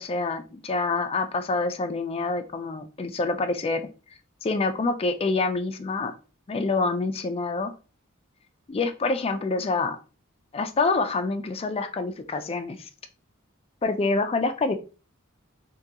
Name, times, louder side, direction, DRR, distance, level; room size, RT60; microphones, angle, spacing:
voice 1, 0.0-3.8 4.4-6.1 6.5-7.7 8.7-10.0 10.5-12.9 13.8-14.7, left 3 dB, 30° left, 8 dB, 0.3 m, -26 dB
3.6 x 2.3 x 2.7 m, 0.34 s
head